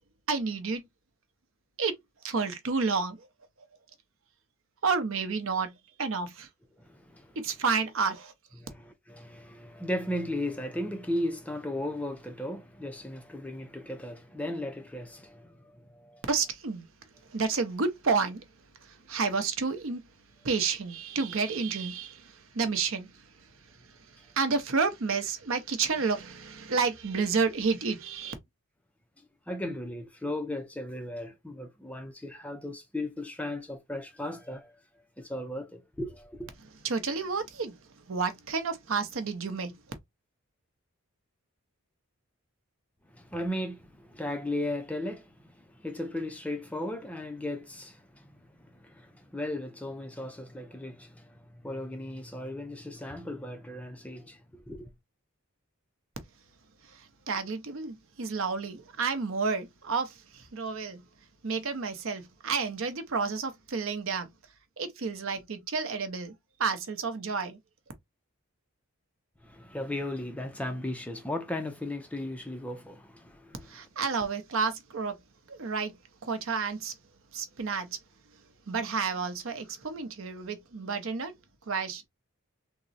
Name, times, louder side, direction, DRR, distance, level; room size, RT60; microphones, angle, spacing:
voice 1, 0.3-0.8 1.8-2.0 2.2-3.3 4.8-5.7 6.0-6.5 7.4-8.3 16.3-16.9 17.3-18.5 18.8-20.0 20.4-23.2 24.3-28.3 36.8-37.8 38.1-39.7 56.9-61.0 61.4-64.3 64.8-66.3 66.6-67.6 73.7-75.2 75.5-76.9 77.3-77.9 78.7-81.3 81.7-82.1, right 4 dB, 65° right, 0.6 m, -30 dB
voice 2, 6.8-7.4 8.6-16.2 29.5-34.8 35.2-36.5 43.1-54.9 69.4-73.8, left 1 dB, 5° left, 0.3 m, -36 dB
3.6 x 2.0 x 2.5 m
head